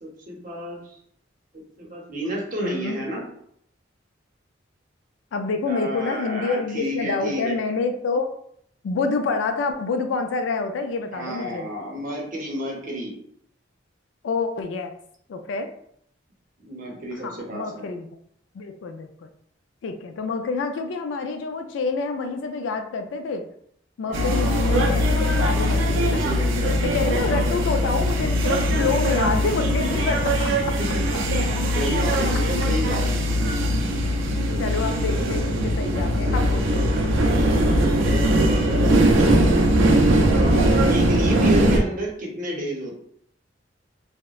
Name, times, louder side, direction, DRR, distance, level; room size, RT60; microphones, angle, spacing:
voice 1, 0.0-1.0 1.5-3.2 5.7-7.6 11.1-13.2 16.6-17.9 24.0-24.9 25.3-27.5 30.5-33.2 35.2-35.4 37.4-39.7 40.2-43.0, equal, 45° right, -2 dB, 0.7 m, -31 dB
voice 2, 2.6-3.0 5.3-8.3 8.8-11.7 14.2-14.9 15.3-15.7 17.2-18.1 18.5-19.3 19.8-23.5 24.0-26.2 26.8-30.7 34.6-36.9 41.0-41.2, left 4 dB, 75° left, 6 dB, 0.3 m, -27 dB
sound 1, 24.1-41.8, equal, 90° right, 0.4 m, -20 dB
2.8 x 2.0 x 2.3 m, 0.69 s
head